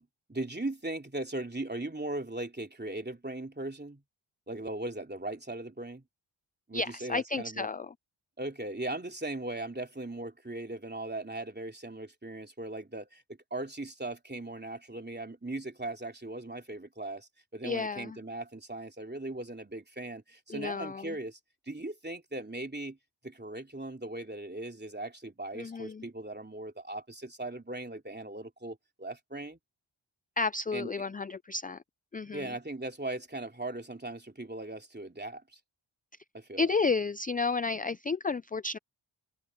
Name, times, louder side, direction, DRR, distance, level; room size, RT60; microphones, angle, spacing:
voice 1, 0.0-4.0 4.5-6.0 6.7-7.7 8.4-13.2 13.5-21.4 21.7-23.0 23.2-29.6 30.7-30.9 32.3-35.6 36.3-36.7, right 2 dB, 20° right, 3.2 m, -39 dB
voice 2, 6.7-7.9 17.6-18.2 20.5-21.1 25.5-26.0 30.4-31.8 32.1-32.5 36.6-38.8, left 4 dB, 20° left, 0.4 m, -32 dB
cardioid pair, 45°, 49 cm